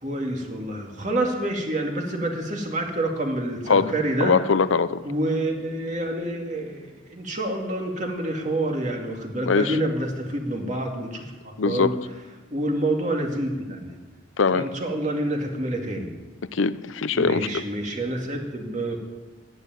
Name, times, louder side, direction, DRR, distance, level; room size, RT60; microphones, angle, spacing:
voice 1, 0.0-4.3 5.0-11.9 12.5-14.0 14.5-16.1 17.1-19.0, right 1 dB, 40° right, 1 dB, 2.4 m, -28 dB
voice 2, 4.2-5.0 9.4-9.8 11.6-12.0 14.4-14.7 16.5-17.6, left 5 dB, 80° left, 15 dB, 0.6 m, -22 dB
13.0 x 11.0 x 9.3 m, 1.3 s
head